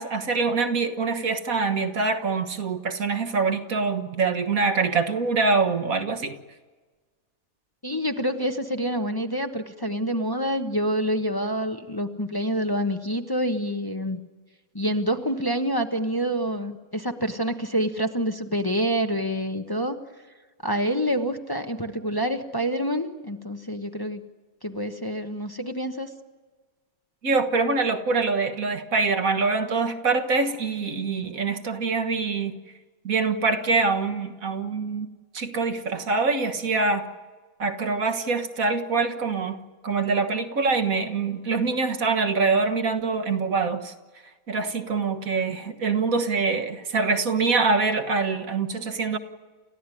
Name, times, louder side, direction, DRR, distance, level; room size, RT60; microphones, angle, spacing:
voice 1, 0.0-6.4 27.2-32.5 33.0-35.1 35.3-37.1 37.6-39.6 39.8-43.9 44.5-49.2, right 4 dB, 75° right, 8 dB, 1.9 m, -24 dB
voice 2, 7.8-14.2 14.7-20.0 20.6-24.2 24.6-26.1, equal, 15° left, 6 dB, 1.1 m, -27 dB
29.5 x 15.0 x 9.9 m, 1.3 s
omnidirectional pair, 1.5 m